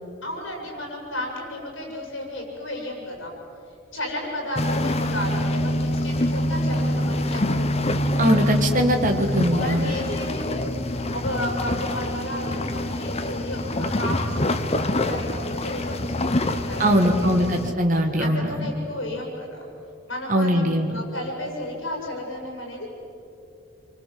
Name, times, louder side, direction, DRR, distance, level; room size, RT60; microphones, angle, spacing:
voice 1, 0.2-3.3 3.9-8.0 9.6-14.3 14.6-17.4 18.0-19.7 20.1-22.9, left 1 dB, 60° left, -1 dB, 7.4 m, -33 dB
sound 1, 4.6-17.7, left 1 dB, 30° left, 1.1 m, -25 dB
voice 2, 8.2-9.9 16.8-18.7 20.3-21.0, equal, 35° right, 2 dB, 2.0 m, -21 dB
28.5 x 25.0 x 8.0 m, 2.8 s
head